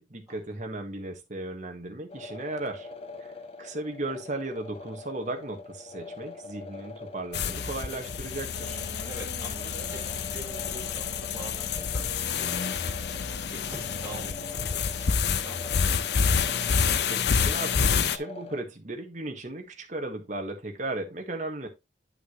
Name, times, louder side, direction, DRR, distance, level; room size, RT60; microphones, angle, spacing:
voice 1, 0.0-2.9 3.2-8.8 17.1-21.7, right 2 dB, 40° right, 1.5 m, -36 dB
sound 1, 2.1-18.6, left 3 dB, 35° left, 0.8 m, -44 dB
sound 2, 7.3-18.2, left 6 dB, 60° left, 0.6 m, -28 dB
sound 3, 8.5-17.0, right 1 dB, 70° right, 1.7 m, -48 dB
voice 2, 9.0-16.0, right 2 dB, 5° right, 3.3 m, -45 dB
9.7 x 5.8 x 3.0 m
head